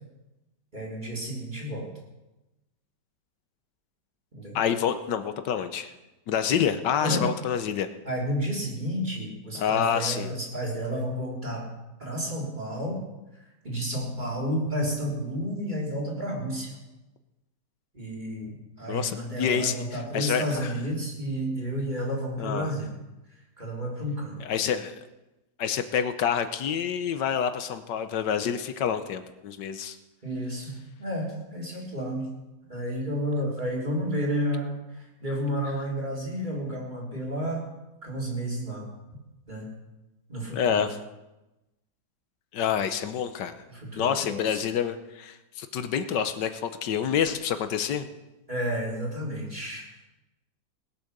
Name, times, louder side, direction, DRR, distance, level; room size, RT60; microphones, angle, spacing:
voice 1, 0.7-1.9 4.3-4.6 7.0-7.3 8.0-11.7 12.0-13.0 13.6-16.8 17.9-22.9 23.6-24.3 30.2-32.3 32.7-37.6 38.0-38.9 39.5-39.7 40.3-40.8 43.7-44.6 48.5-49.9, equal, 25° right, -3 dB, 3.6 m, -31 dB
voice 2, 4.5-5.9 6.3-7.9 9.5-10.3 18.9-20.7 22.4-22.7 24.4-24.9 25.6-30.0 40.5-41.0 42.5-43.5 44.0-48.1, left 8 dB, 80° left, 10 dB, 1.5 m, -27 dB
19.5 x 8.5 x 6.6 m, 1.0 s
omnidirectional pair, 1.9 m